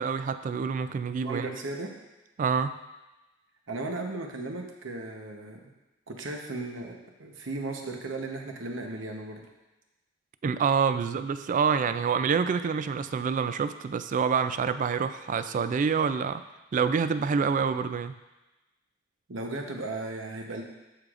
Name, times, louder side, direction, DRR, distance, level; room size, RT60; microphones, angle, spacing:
voice 1, 0.0-1.5 2.4-2.7 10.4-16.4 16.7-18.1, right 6 dB, 40° right, 12 dB, 0.3 m, -27 dB
voice 2, 1.2-1.9 3.7-5.7 6.1-9.5 19.3-20.6, right 2 dB, 70° right, 2 dB, 1.0 m, -36 dB
13.0 x 4.9 x 2.5 m, 1.0 s
head